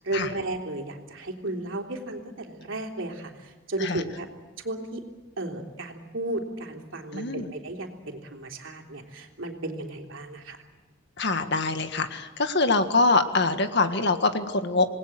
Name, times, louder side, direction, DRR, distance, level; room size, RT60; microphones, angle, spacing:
voice 1, 0.0-4.3 4.6-5.0 5.4-10.6, right 2 dB, 75° right, 2 dB, 3.4 m, -34 dB
voice 2, 7.1-7.5 11.2-15.0, left 3 dB, 60° left, 8 dB, 1.7 m, -24 dB
27.5 x 19.5 x 7.7 m, 1.3 s
head